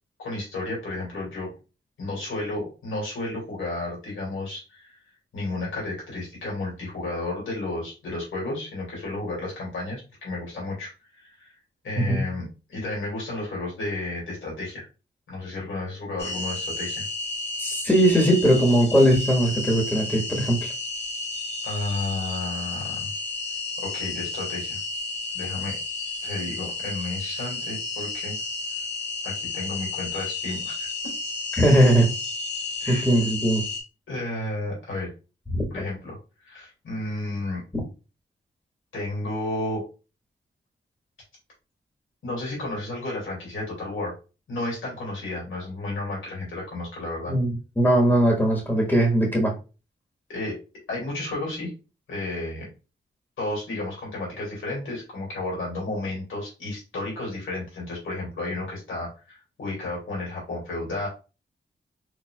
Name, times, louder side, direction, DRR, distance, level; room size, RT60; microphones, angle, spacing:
voice 1, 0.2-1.5 2.0-5.0 5.3-11.5 11.8-14.8 15.3-17.0 21.6-23.1 23.8-24.8 25.3-25.8 26.2-28.3 29.2-30.9 32.8-33.1 34.1-35.1 35.7-36.2 36.4-37.6 38.9-39.8 42.2-44.1 44.5-47.3 50.3-50.6 50.9-51.7 52.1-52.7 53.4-61.1, left 2 dB, 90° left, 2.5 m, -32 dB
sound 1, 16.2-33.8, left 3 dB, 60° left, 1.9 m, -32 dB
voice 2, 17.6-20.7 31.6-32.1 32.9-33.6 35.5-35.7 37.7-37.8 47.3-47.5 47.8-49.5, right 1 dB, 10° left, 1.5 m, -20 dB
4.6 x 3.8 x 2.4 m
cardioid pair, 60°, 20 cm